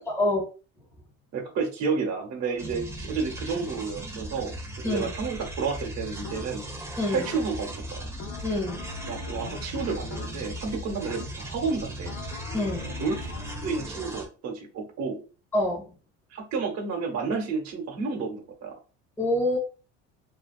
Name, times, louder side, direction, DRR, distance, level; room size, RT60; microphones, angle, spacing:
voice 1, 0.1-0.4 4.8-5.1 7.0-7.3 8.4-8.9 12.5-12.9 15.5-15.9 19.2-19.6, left 1 dB, 5° left, -2 dB, 1.0 m, -26 dB
voice 2, 1.3-6.6 7.1-8.1 9.1-12.1 12.9-13.3 13.6-15.2 16.3-18.7, right 4 dB, 50° right, 2 dB, 1.0 m, -31 dB
sound 1, 2.6-14.3, right 1 dB, 10° right, 0.5 m, -38 dB
sound 2, 6.2-6.8 7.2-7.8 8.2-10.7 11.1-11.6 12.1-14.0, left 5 dB, 85° left, 0.6 m, -40 dB
2.5 x 2.2 x 2.4 m, 0.34 s
supercardioid pair, 105°, 33 cm